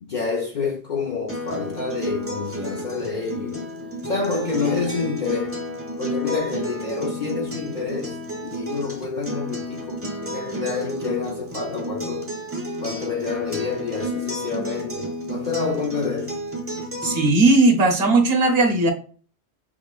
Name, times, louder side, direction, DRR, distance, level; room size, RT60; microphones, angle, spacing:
voice 1, 0.0-3.7 4.0-5.6 6.0-8.2 8.4-12.3 12.8-16.4, left 4 dB, 50° left, 0.6 m, -28 dB
Acoustic guitar, 1.3-17.3, equal, 15° right, 0.6 m, -31 dB
voice 2, 17.0-18.9, right 2 dB, 60° right, 1.0 m, -17 dB
5.9 x 2.1 x 2.3 m
omnidirectional pair, 1.2 m